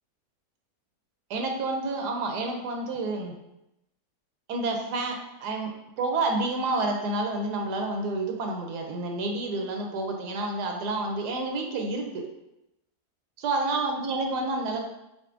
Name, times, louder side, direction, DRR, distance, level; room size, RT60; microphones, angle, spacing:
voice 1, 1.3-3.3 4.5-5.7 6.0-12.2 13.4-14.9, right 2 dB, 85° right, 2 dB, 1.2 m, -29 dB
6.0 x 2.5 x 2.5 m, 0.87 s
omnidirectional pair, 1.7 m